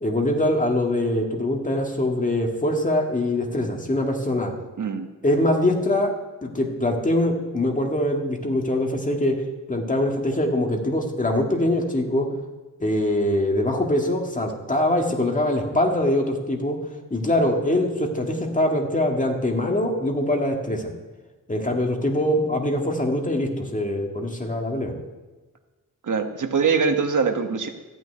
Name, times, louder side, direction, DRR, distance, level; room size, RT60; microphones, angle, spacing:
voice 1, 0.0-4.5 5.2-6.1 6.4-9.4 9.7-12.3 12.8-16.8 17.1-20.9 21.5-24.9, left 1 dB, 25° left, 1 dB, 1.9 m, -23 dB
voice 2, 4.8-5.1 26.0-27.7, right 5 dB, 65° right, 6 dB, 1.3 m, -23 dB
14.0 x 6.2 x 9.5 m, 1.2 s
wide cardioid pair, 120°, 32 cm